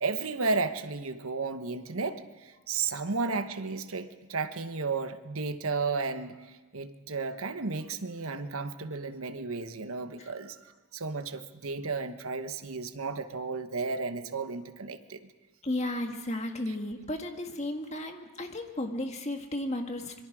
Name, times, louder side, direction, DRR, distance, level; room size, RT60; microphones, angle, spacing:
voice 1, 0.0-15.3 16.7-16.8, right 4 dB, 70° right, 9 dB, 1.2 m, -33 dB
voice 2, 15.6-20.2, left 1 dB, 30° left, 4 dB, 1.7 m, -34 dB
26.0 x 23.0 x 4.9 m, 1.2 s
head